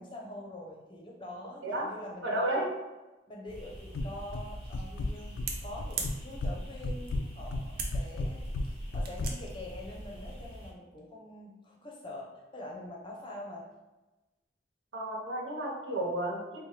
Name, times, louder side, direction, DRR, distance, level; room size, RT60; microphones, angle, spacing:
voice 1, 0.0-2.4 3.3-13.7, left 1 dB, 25° left, -2 dB, 0.6 m, -45 dB
voice 2, 2.2-2.7 14.9-16.6, right 1 dB, 90° right, -4 dB, 1.1 m, -32 dB
sound 1, 3.5-10.7, equal, 20° right, 1.2 m, -44 dB
sound 2, 3.9-4.5 4.7-5.5 5.8-6.6 6.8-9.3, left 2 dB, 75° left, 0.3 m, -33 dB
sound 3, 4.7-10.0, right 4 dB, 50° right, 0.5 m, -42 dB
4.2 x 2.1 x 3.2 m, 1.1 s
head